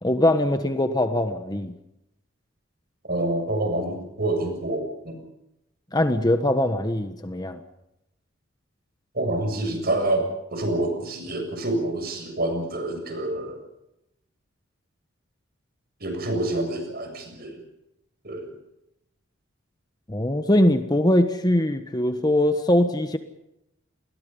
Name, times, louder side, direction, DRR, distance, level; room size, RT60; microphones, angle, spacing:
voice 1, 0.0-1.7 5.9-7.6 20.1-23.2, left 1 dB, 20° left, 8 dB, 1.3 m, -22 dB
voice 2, 3.1-5.2 9.1-13.6 16.0-17.6 18.2-18.5, right 1 dB, 50° right, 6 dB, 7.3 m, -27 dB
29.5 x 21.5 x 5.5 m, 0.86 s
head